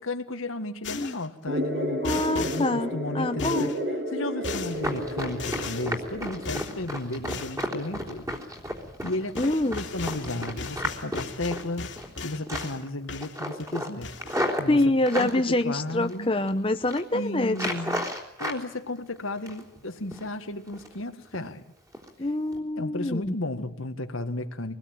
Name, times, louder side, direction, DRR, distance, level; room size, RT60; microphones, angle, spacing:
voice 1, 0.0-2.0 2.3-3.7 4.1-8.3 9.0-11.9 12.2-14.1 14.6-14.8 15.2-16.3 17.1-18.1 18.4-21.6 22.8-24.8, left 2 dB, 90° left, 7 dB, 1.9 m, -34 dB
sound 1, 0.8-1.3 2.0-2.7 3.4-3.8 4.4-4.8 5.4-5.9 6.5-6.8 7.3-7.6 9.0-9.1 9.4-12.8 13.1-13.7 14.0-14.4, left 4 dB, 65° left, 2.6 m, -37 dB
sound 2, 1.5-6.5, equal, 55° right, 3.8 m, -31 dB
voice 2, 2.0-3.7 9.4-9.8 14.7-17.6 22.2-23.3, left 1 dB, 25° left, 7 dB, 0.9 m, -25 dB
Run, 4.7-12.2 12.5-12.9 13.2-15.3 15.9-16.5 16.8-17.0 17.5-18.6 19.0-19.8 20.1-20.3 20.7-21.0 21.3-21.5 21.9-22.1 22.5-22.6, equal, 15° right, 3.5 m, -33 dB
24.0 x 20.0 x 9.1 m, 0.81 s
head